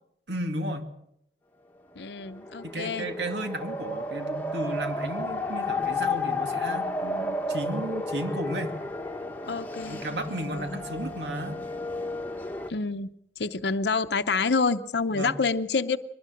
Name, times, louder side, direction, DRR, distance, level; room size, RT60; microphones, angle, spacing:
voice 1, 0.3-0.9 2.6-8.8 9.9-11.6 15.1-15.4, right 1 dB, 80° right, 6 dB, 2.6 m, -34 dB
voice 2, 2.0-3.1 9.5-10.8 12.7-13.1 13.4-16.0, left 4 dB, 75° left, 9 dB, 0.7 m, -28 dB
sound 1, 2.1-12.7, left 2 dB, 10° left, 1.3 m, -32 dB
22.5 x 19.5 x 6.5 m, 0.76 s
head